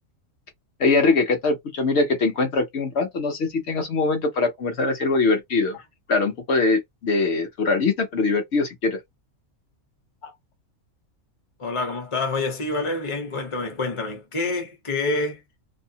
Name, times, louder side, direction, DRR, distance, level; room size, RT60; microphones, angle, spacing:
voice 1, 0.8-5.8 6.1-9.0, left 3 dB, 55° left, 0.9 m, -22 dB
voice 2, 11.6-15.4, left 3 dB, 30° left, 0.7 m, -27 dB
2.7 x 2.1 x 2.7 m
omnidirectional pair, 1.5 m